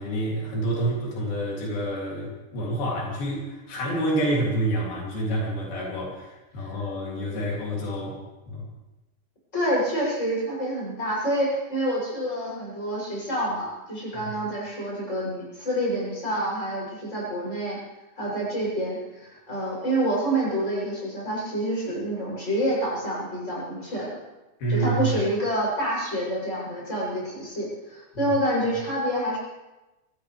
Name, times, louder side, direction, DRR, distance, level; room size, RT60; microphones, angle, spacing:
voice 1, 0.0-8.2 8.5-8.7 24.6-25.1 28.1-28.3, right 1 dB, 80° left, -3 dB, 4.9 m, -28 dB
voice 2, 9.5-17.8 18.2-24.1 24.7-29.4, right 1 dB, 20° left, -5 dB, 7.9 m, -27 dB
24.0 x 16.0 x 3.4 m, 1.0 s
omnidirectional pair, 4.2 m